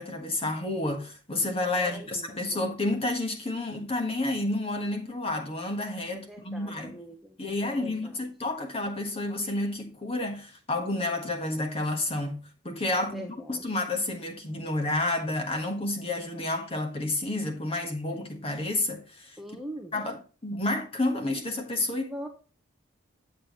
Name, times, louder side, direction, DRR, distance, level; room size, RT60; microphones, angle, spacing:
voice 1, 0.0-7.0 7.4-19.4 19.9-22.1, left 2 dB, 30° left, 1.4 m, -30 dB
voice 2, 1.7-2.7 6.1-8.2 12.9-13.6 19.4-19.9 22.1-22.3, equal, ahead, 0.8 m, -42 dB
8.3 x 7.5 x 3.0 m
head